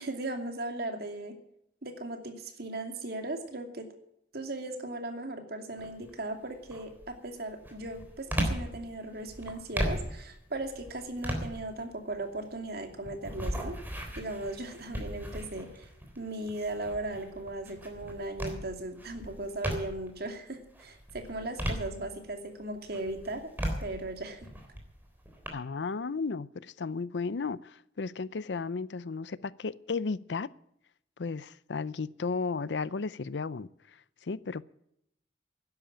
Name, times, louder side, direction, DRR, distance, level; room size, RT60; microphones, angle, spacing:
voice 1, 0.0-1.3 1.8-3.9 4.3-13.8 14.1-15.9 16.2-23.5 23.8-24.5, right 2 dB, 60° right, 5 dB, 2.6 m, -37 dB
sound 1, 5.8-6.2 6.7-20.2 20.6-22.5 22.9-25.5, equal, 10° right, 3.5 m, -37 dB
voice 2, 25.5-30.5 31.2-34.6, left 4 dB, 75° left, 19 dB, 0.6 m, -34 dB
12.0 x 10.5 x 8.8 m, 0.76 s
head